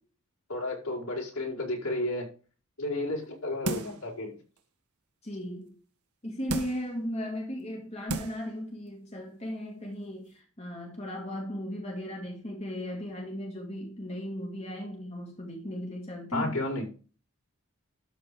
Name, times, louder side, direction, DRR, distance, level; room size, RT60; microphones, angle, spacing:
voice 1, 0.5-2.3 2.8-4.4 16.3-16.9, left 2 dB, 80° left, 5.3 m, -32 dB
sound 1, 3.6-4.1 4.6-4.7 6.5-6.9 7.6-7.7 8.1-8.5 8.9-9.0, right 2 dB, 80° right, 1.5 m, -33 dB
voice 2, 5.2-5.8 6.2-16.7, equal, 30° left, 2.2 m, -36 dB
13.0 x 4.4 x 5.3 m
head